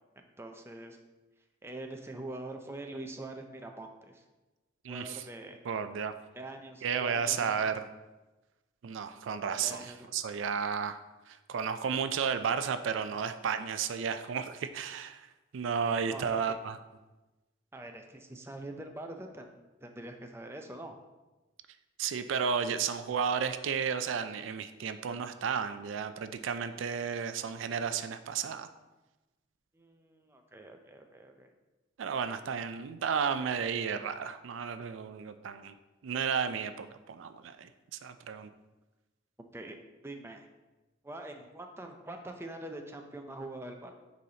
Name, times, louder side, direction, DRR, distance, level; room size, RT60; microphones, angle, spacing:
voice 1, 0.2-1.0 1.6-4.2 4.9-5.6 6.4-7.7 9.6-10.1 16.1-16.6 17.7-21.0 29.7-31.5 39.5-39.8 40.0-40.5 41.0-43.9, right 1 dB, 15° right, 4 dB, 0.5 m, -44 dB
voice 2, 4.8-5.2 5.6-6.1 6.8-7.8 8.8-11.0 11.3-15.3 15.5-16.8 22.0-28.7 32.0-35.7 36.0-38.5, right 6 dB, 80° right, 10 dB, 0.4 m, -33 dB
9.3 x 4.1 x 2.8 m, 1.1 s
head